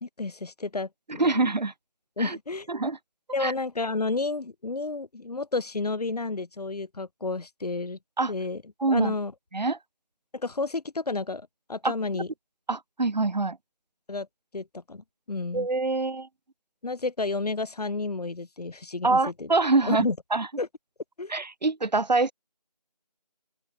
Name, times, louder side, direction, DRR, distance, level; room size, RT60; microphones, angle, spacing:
voice 1, 0.0-1.5 2.2-2.7 3.3-8.0 8.3-8.6 8.9-9.3 10.3-12.3 14.1-14.3 14.5-15.7 16.8-19.5 19.8-20.2 20.6-20.7 21.2-21.3, left 3 dB, 65° left, 0.8 m, -31 dB
voice 2, 1.1-1.7 2.2-2.4 2.7-3.0 3.4-3.5 8.2-8.3 8.8-9.1 9.5-9.8 11.8-11.9 12.7-13.6 15.5-16.3 19.0-20.5 21.3-22.3, right 3 dB, 90° right, 1.0 m, -25 dB
open air
figure-of-eight pair, 180°, 21 cm